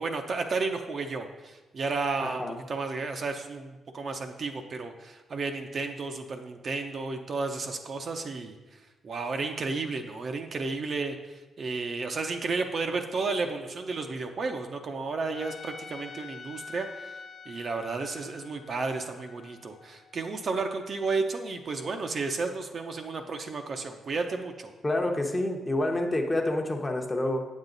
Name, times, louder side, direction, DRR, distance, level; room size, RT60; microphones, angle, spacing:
voice 1, 0.0-8.6 9.0-17.2 17.5-24.7, right 4 dB, 45° right, 5 dB, 0.7 m, -32 dB
voice 2, 2.2-2.6 24.8-27.4, left 1 dB, 15° left, 2 dB, 0.9 m, -28 dB
Trumpet, 15.3-20.5, left 5 dB, 50° left, 0.8 m, -46 dB
8.8 x 7.3 x 3.9 m, 1.2 s
cardioid pair, 125°, 0 cm